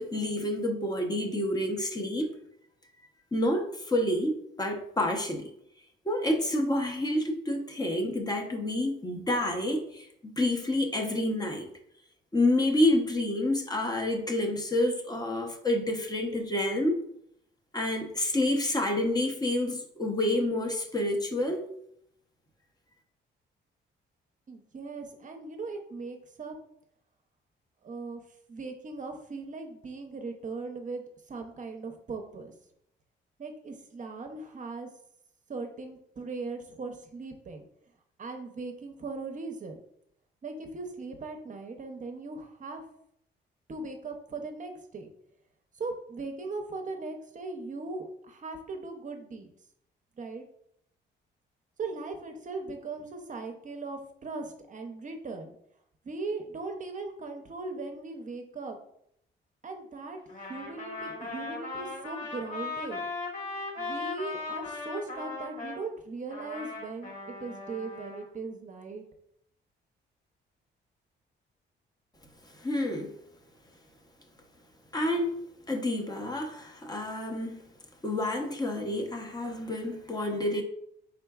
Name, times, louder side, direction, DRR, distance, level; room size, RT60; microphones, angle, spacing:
voice 1, 0.0-2.3 3.3-5.5 6.0-11.7 12.3-17.0 17.7-21.6 72.5-73.1 74.9-75.3 75.7-77.7 78.0-80.6, left 1 dB, 20° left, 2 dB, 0.7 m, -28 dB
voice 2, 24.5-26.5 27.8-28.2 28.5-32.5 33.4-34.9 35.5-37.6 38.2-39.8 40.4-42.8 43.7-45.1 45.8-49.5 50.2-50.4 51.8-55.5 56.0-58.8 59.6-60.2 60.5-63.0 63.8-67.1 67.4-69.0, right 3 dB, 40° right, 4 dB, 0.6 m, -39 dB
Trumpet, 60.3-65.8 66.3-68.3, left 3 dB, 40° left, 1.4 m, -38 dB
4.4 x 3.7 x 2.3 m, 0.72 s
cardioid pair, 90°, 20 cm